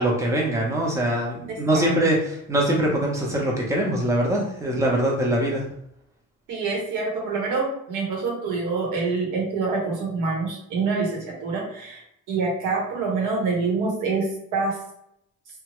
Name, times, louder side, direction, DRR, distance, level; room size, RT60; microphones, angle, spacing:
voice 1, 0.0-5.6, right 1 dB, 10° right, -2 dB, 0.8 m, -23 dB
voice 2, 1.5-1.9 6.5-14.8, right 4 dB, 85° right, -2 dB, 1.1 m, -26 dB
2.8 x 2.3 x 3.0 m, 0.75 s
cardioid pair, 90°, 30 cm